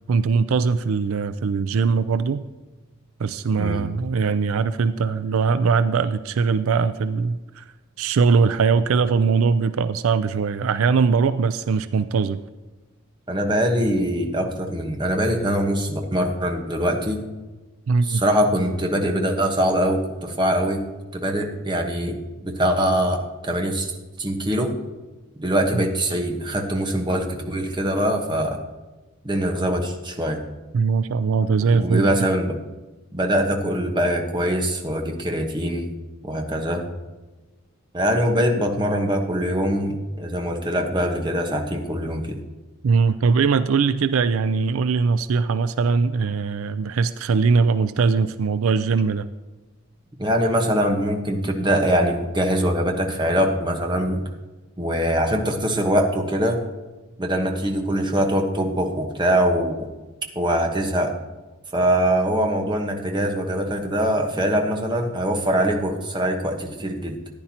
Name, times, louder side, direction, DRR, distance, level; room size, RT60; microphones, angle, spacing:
voice 1, 0.1-2.4 3.2-7.6 8.0-12.4 17.9-18.2 25.7-25.9 30.7-32.0 42.8-49.3, right 5 dB, 75° right, 13 dB, 0.4 m, -21 dB
voice 2, 13.3-17.2 18.0-20.8 21.1-23.9 24.2-24.8 25.4-28.6 29.2-30.4 31.7-32.6 33.1-35.9 36.2-36.9 37.9-42.4 50.2-54.2 54.8-56.6 57.2-59.9 60.3-61.2 61.7-67.2, equal, 20° right, 3 dB, 1.2 m, -23 dB
14.5 x 10.0 x 2.9 m, 1.2 s
head